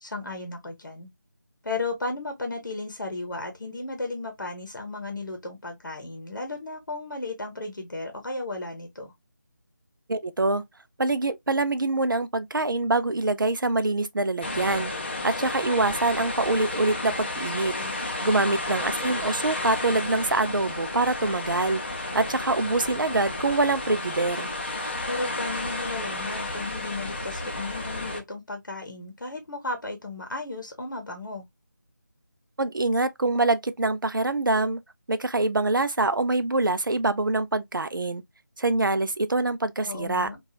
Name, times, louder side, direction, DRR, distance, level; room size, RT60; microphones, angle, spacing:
voice 1, 0.0-1.1 1.6-9.1 17.5-18.1 25.1-31.4 39.8-40.4, left 2 dB, 70° left, 0.8 m, -34 dB
voice 2, 10.1-10.6 11.0-14.9 15.2-17.7 18.2-21.8 22.1-24.5 32.6-34.8 35.1-38.2 38.6-40.3, right 2 dB, 85° right, 0.4 m, -25 dB
sound 1, 14.4-28.2, left 2 dB, 35° left, 0.5 m, -32 dB
2.8 x 2.3 x 2.3 m
figure-of-eight pair, 165°, 11 cm